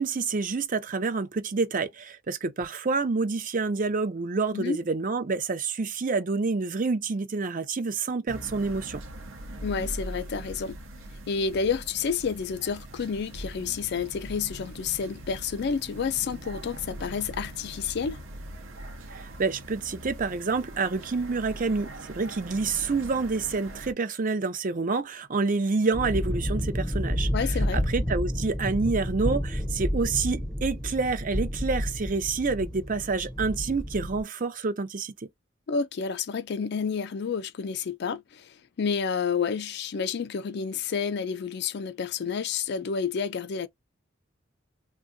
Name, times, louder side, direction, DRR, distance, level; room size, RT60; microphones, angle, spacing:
voice 1, 0.0-9.0 19.1-27.3 27.7-35.1, right 4 dB, 40° right, 0.6 m, -28 dB
sound 1, 8.3-23.9, right 1 dB, 85° right, 0.8 m, -41 dB
voice 2, 9.6-10.8 11.3-18.2 27.3-27.8 35.7-43.7, left 6 dB, 55° left, 0.4 m, -30 dB
sound 2, 25.9-34.2, equal, 5° left, 0.6 m, -30 dB
3.4 x 2.1 x 2.6 m
head